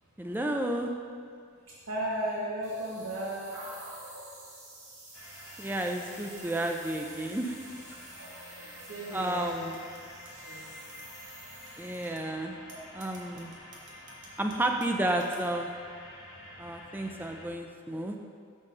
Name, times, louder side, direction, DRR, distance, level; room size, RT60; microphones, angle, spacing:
voice 1, 0.2-0.9 5.6-7.5 8.6-8.7 9.1-9.8 11.8-12.6 12.9-13.5 14.4-15.7 16.6-18.2, right 1 dB, 10° right, 3 dB, 0.4 m, -31 dB
voice 2, 1.9-4.7 8.1-9.7 10.4-10.7, right 1 dB, 85° right, -6 dB, 1.1 m, -36 dB
sound 1, 2.6-12.1, right 2 dB, 35° right, 1.4 m, -51 dB
sound 2, 5.1-17.5, left 1 dB, 85° left, 1.1 m, -49 dB
sound 3, 5.1-7.5 8.2-11.4 11.7-12.3 12.7-15.7, right 4 dB, 60° right, 1.4 m, -56 dB
6.3 x 5.7 x 5.1 m, 2.2 s
head